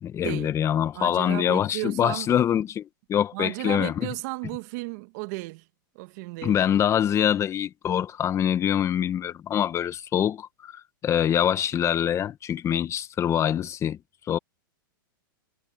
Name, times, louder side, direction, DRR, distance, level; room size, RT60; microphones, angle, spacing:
voice 1, 0.0-3.9 6.4-14.0 14.3-14.4, left 10 dB, 25° left, 1.5 m, -24 dB
voice 2, 0.9-2.4 3.3-5.7 5.9-6.6, right 25 dB, 55° right, 1.5 m, -34 dB
hypercardioid pair, 125°, 11 cm